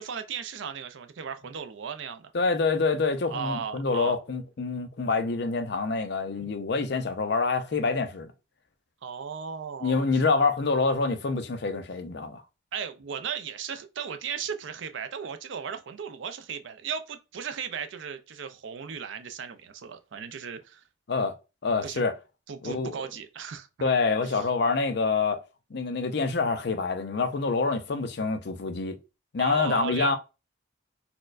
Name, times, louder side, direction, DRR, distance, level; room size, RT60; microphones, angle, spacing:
voice 1, 0.0-2.3 3.3-4.2 9.0-10.2 12.7-20.8 21.8-22.0 22.5-23.9 24.2-24.4 29.4-30.2, right 6 dB, 65° right, 0.4 m, -36 dB
voice 2, 2.3-8.3 9.8-12.4 21.1-21.3 21.6-22.1 22.6-22.9 23.8-25.4 25.7-29.0 29.3-30.2, left 4 dB, 55° left, 0.5 m, -26 dB
4.2 x 2.1 x 2.4 m
head